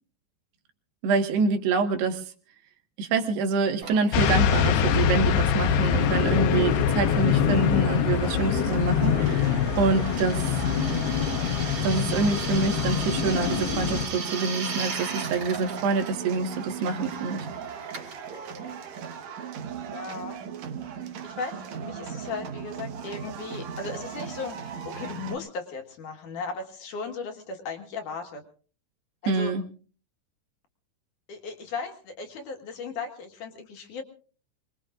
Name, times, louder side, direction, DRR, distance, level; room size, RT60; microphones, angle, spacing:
voice 1, 1.0-2.2 3.0-10.5 11.8-17.5 29.3-29.6, right 4 dB, 80° right, 5 dB, 3.7 m, -26 dB
Drill, 3.8-20.1, right 5 dB, 40° right, 3.3 m, -39 dB
sound 1, 4.1-14.1, left 8 dB, 85° left, 3.1 m, -24 dB
sound 2, 8.2-25.4, right 8 dB, 60° right, 1.9 m, -38 dB
voice 2, 10.7-11.1 19.8-20.4 21.0-28.4 29.2-29.5 31.3-34.0, left 4 dB, 60° left, 4 dB, 2.8 m, -37 dB
25.0 x 21.5 x 2.5 m, 0.41 s
omnidirectional pair, 4.6 m